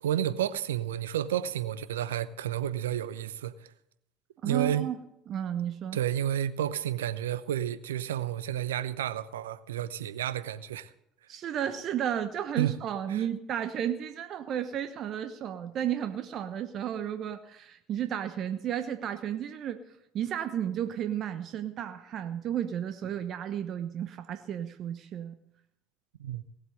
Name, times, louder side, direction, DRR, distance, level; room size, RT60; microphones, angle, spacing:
voice 1, 0.0-3.7 4.4-4.9 5.9-10.9 12.6-12.8 13.1-13.2 26.2-26.4, right 10 dB, 80° right, 0.8 m, -31 dB
voice 2, 4.4-5.0 5.3-6.0 11.3-19.8 20.1-25.4, right 10 dB, 50° right, 1.0 m, -33 dB
17.5 x 8.1 x 7.7 m
hypercardioid pair, 70°, 0 cm